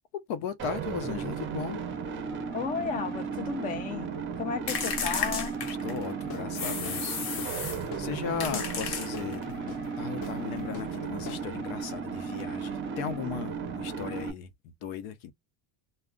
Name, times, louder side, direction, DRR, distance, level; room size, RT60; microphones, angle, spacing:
voice 1, 0.1-1.8 5.6-7.2 8.0-9.4 10.0-15.3, left 7 dB, 80° left, 0.8 m, -37 dB
sound 1, 0.6-14.3, right 6 dB, 25° right, 0.5 m, -35 dB
voice 2, 2.5-4.1 4.4-5.5 8.5-8.6, left 5 dB, 20° left, 0.3 m, -33 dB
sound 2, 4.7-6.1 6.5-7.9 8.4-9.5, left 6 dB, 60° left, 1.1 m, -33 dB
Guitar / Drum, 6.3-11.8, left 7 dB, 45° left, 0.7 m, -45 dB
2.3 x 2.1 x 3.6 m
cardioid pair, 165°, 45 cm